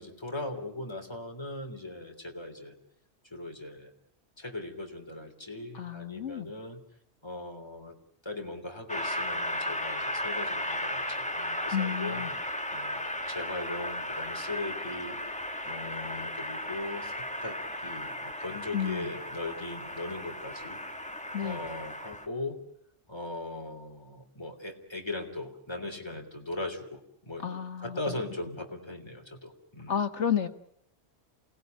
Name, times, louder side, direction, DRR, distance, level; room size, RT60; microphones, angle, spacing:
voice 1, 0.0-2.8 3.3-3.9 4.4-6.8 7.2-8.0 8.2-12.2 12.7-17.6 17.8-20.8 21.4-22.6 23.1-27.4 27.8-30.0, left 2 dB, 20° left, 3 dB, 3.5 m, -39 dB
voice 2, 5.7-6.5 11.7-12.3 18.7-19.1 21.3-21.6 27.4-28.2 29.9-30.5, left 8 dB, 70° left, 9 dB, 1.8 m, -31 dB
Train, 8.9-22.3, left 1 dB, 5° left, 1.5 m, -35 dB
28.5 x 18.5 x 9.3 m, 0.73 s
omnidirectional pair, 1.2 m